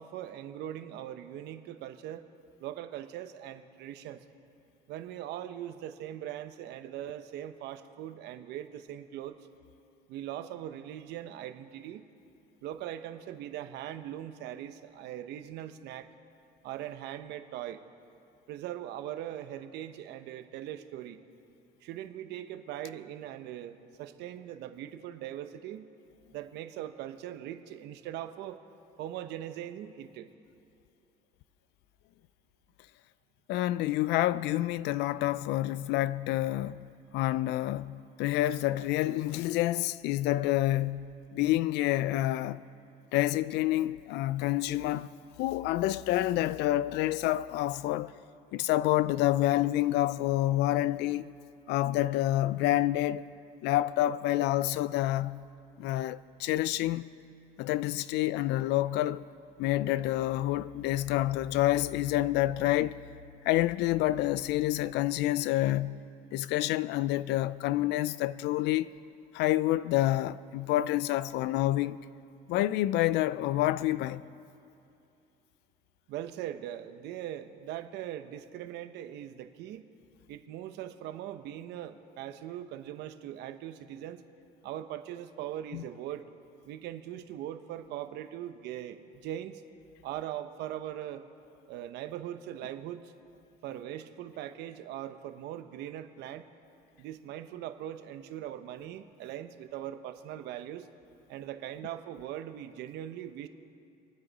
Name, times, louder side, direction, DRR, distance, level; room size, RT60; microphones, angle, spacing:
voice 1, 0.0-2.2 2.6-4.2 4.9-9.4 10.1-12.1 12.6-16.1 16.6-17.8 18.5-21.2 21.8-25.9 26.3-28.6 29.0-30.3 76.1-79.8 80.3-84.2 84.6-86.2 86.6-89.6 90.0-91.2 91.7-93.1 93.6-96.4 97.0-100.9 101.3-103.5, right 11 dB, 85° right, 0.9 m, -40 dB
voice 2, 33.5-36.9 37.1-42.6 43.1-45.1 45.4-48.1 48.5-51.3 51.7-53.3 53.6-55.5 55.8-57.1 57.6-59.3 59.6-63.0 63.4-66.0 66.3-68.9 69.3-72.0 72.5-74.2 85.7-85.8, left 15 dB, 90° left, 0.4 m, -28 dB
27.5 x 9.6 x 4.1 m
cardioid pair, 110°, 17 cm